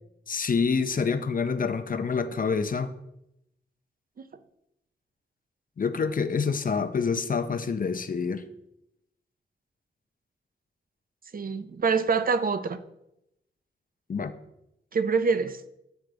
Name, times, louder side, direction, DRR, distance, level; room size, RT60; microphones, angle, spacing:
voice 1, 0.3-2.9 5.8-8.5 14.1-14.3, left 5 dB, 50° left, 10 dB, 0.5 m, -27 dB
voice 2, 11.3-12.8 14.9-15.6, right 5 dB, 50° right, 11 dB, 0.5 m, -25 dB
8.1 x 3.8 x 4.8 m, 0.83 s
cardioid pair, 65°, 19 cm